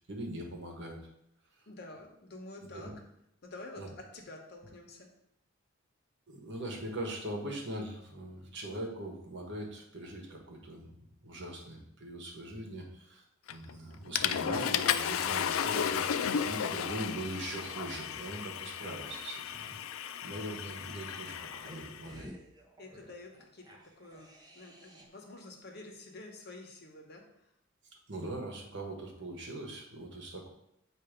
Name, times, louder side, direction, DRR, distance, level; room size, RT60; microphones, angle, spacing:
voice 1, 0.1-1.1 1.6-1.7 2.7-2.9 3.8-3.9 6.3-22.3 28.1-30.5, right 1 dB, 60° right, 1 dB, 1.2 m, -41 dB
voice 2, 1.7-2.9 3.4-5.1 20.2-20.5 22.8-27.5, left 2 dB, 55° left, 1 dB, 1.1 m, -49 dB
Water / Toilet flush, 13.5-13.7 14.1-22.0, left 8 dB, 85° left, 0.3 m, -34 dB
sound 1, 20.9-25.3 25.6-25.7, equal, 20° right, 0.8 m, -53 dB
7.8 x 2.7 x 5.0 m, 0.78 s
head